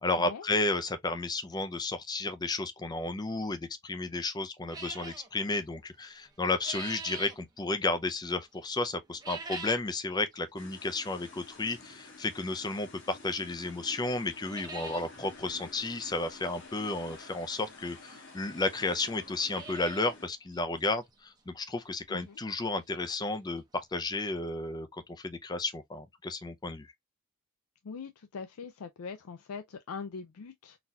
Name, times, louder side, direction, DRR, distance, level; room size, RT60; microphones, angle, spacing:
voice 1, 0.0-26.9, left 2 dB, 20° left, 0.4 m, -33 dB
sound 1, 4.7-5.3 6.2-7.4 9.1-9.9 10.3-10.4 11.2-11.3 13.0-13.1 13.5-13.6 13.9-14.0 14.3-15.1 15.4-15.5 15.8-15.9 17.4-17.5 18.3-18.4 18.6-18.7 19.2-20.2 20.5-20.6 21.1-21.2 21.6-21.7 23.5-23.6 23.7-23.8 24.3-24.4, right 3 dB, 15° right, 0.7 m, -43 dB
sound 2, 10.6-20.3, left 3 dB, 55° left, 1.1 m, -51 dB
voice 2, 27.8-30.8, left 5 dB, 75° left, 0.4 m, -42 dB
3.9 x 2.7 x 2.2 m
head